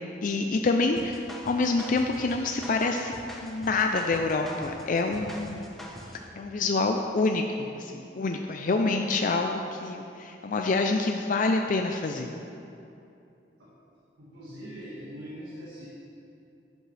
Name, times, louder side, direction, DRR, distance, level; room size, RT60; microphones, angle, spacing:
voice 1, 0.2-3.1 3.4-5.7 6.4-12.3, left 3 dB, 50° left, 3 dB, 0.4 m, -27 dB
sound 1, 1.0-6.3, equal, ahead, 1.0 m, -44 dB
voice 2, 14.2-15.9, equal, 80° right, -7 dB, 1.8 m, -42 dB
10.5 x 10.5 x 3.3 m, 2.7 s
head